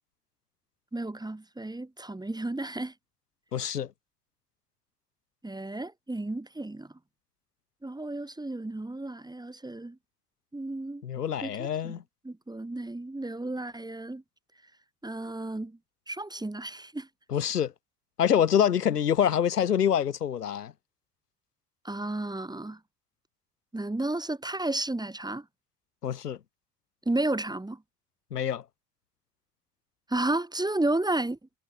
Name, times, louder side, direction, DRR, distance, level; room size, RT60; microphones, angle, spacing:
voice 1, 0.9-2.9 5.4-6.9 7.8-10.0 10.5-11.0 11.4-14.2 15.0-15.8 16.1-17.1 21.8-22.8 23.7-25.5 27.1-27.8 30.1-31.4, right 2 dB, 10° right, 2.3 m, -32 dB
voice 2, 3.5-3.9 11.0-12.0 17.3-17.7 18.2-20.7 26.0-26.4 28.3-28.6, left 9 dB, 85° left, 2.6 m, -26 dB
hypercardioid pair, 65°, 45 cm